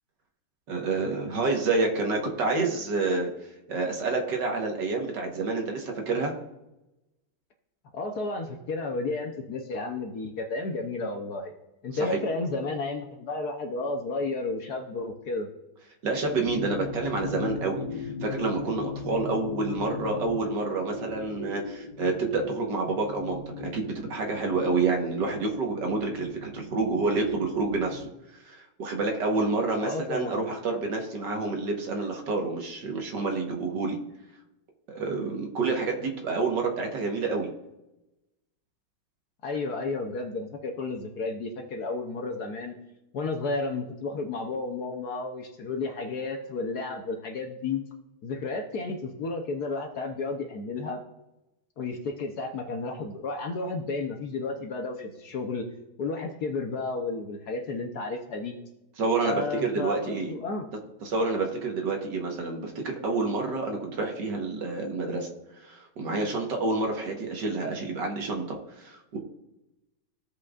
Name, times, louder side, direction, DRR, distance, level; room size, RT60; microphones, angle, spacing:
voice 1, 0.7-3.3 3.7-6.3 12.0-12.2 16.0-28.0 28.4-34.0 35.0-37.5 59.0-60.3 61.0-65.3 65.6-69.2, right 3 dB, 60° right, 2 dB, 1.8 m, -28 dB
voice 2, 7.9-11.5 11.8-15.5 29.8-30.4 39.4-42.7 43.1-47.8 48.2-51.0 51.8-55.7 56.0-58.5 59.2-60.7, left 3 dB, 60° left, 3 dB, 1.2 m, -32 dB
sound 1, 16.3-28.1, left 2 dB, 90° left, 0.3 m, -38 dB
15.5 x 5.3 x 2.4 m, 0.94 s
omnidirectional pair, 2.2 m